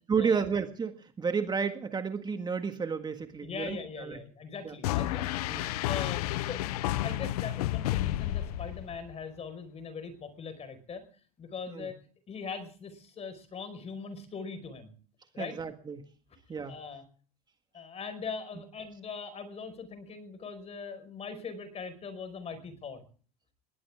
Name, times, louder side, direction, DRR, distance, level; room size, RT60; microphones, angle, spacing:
voice 1, 0.1-4.2 4.6-4.7 5.5-5.6 11.7-11.9 15.4-16.0 16.5-16.8, right 6 dB, 20° right, 7 dB, 1.7 m, -31 dB
voice 2, 3.4-5.4 5.9-6.7 7.0-11.0 11.4-12.0 12.3-14.9 15.3-15.6 16.7-17.0 17.7-23.0, left 5 dB, 35° left, 10 dB, 4.9 m, -41 dB
sound 1, 4.8-9.1, left 14 dB, 85° left, 0.8 m, -31 dB
21.0 x 18.0 x 3.6 m, 0.43 s
supercardioid pair, 105°, 19 cm